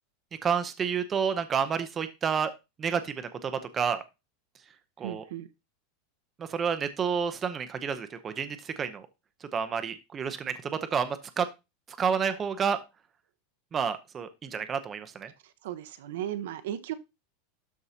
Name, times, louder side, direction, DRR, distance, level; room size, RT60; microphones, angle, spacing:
voice 1, 0.4-2.5 2.8-4.0 5.0-5.2 6.4-9.1 9.5-11.5 12.0-12.8 13.7-15.3, right 6 dB, 20° right, 10 dB, 0.7 m, -30 dB
voice 2, 5.0-5.5 15.4-16.9, right 11 dB, 75° right, 10 dB, 0.9 m, -36 dB
12.5 x 4.7 x 2.8 m, 0.24 s
supercardioid pair, 165°, 0 cm